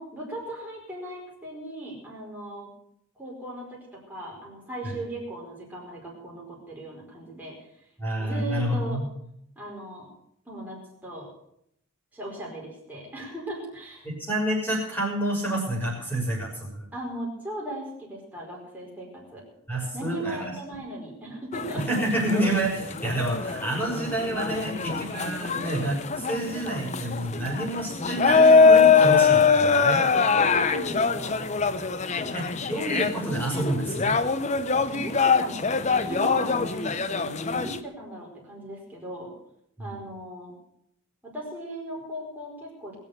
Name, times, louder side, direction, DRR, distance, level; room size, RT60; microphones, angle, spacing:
voice 1, 0.0-2.7 3.2-7.5 8.2-9.0 9.6-10.1 10.5-11.3 12.1-14.1 16.9-19.4 19.9-21.8 30.3-31.5 32.1-32.5 34.9-39.3 39.8-40.5 41.2-42.9, right 1 dB, 10° right, -4 dB, 4.9 m, -37 dB
voice 2, 8.0-9.0 14.0-16.9 19.7-20.5 21.7-30.1 32.0-34.1 39.8-39.9, right 1 dB, 10° left, -3 dB, 6.1 m, -29 dB
sound 1, 21.5-37.8, left 5 dB, 30° left, 0.6 m, -23 dB
22.0 x 7.4 x 6.8 m, 0.75 s
head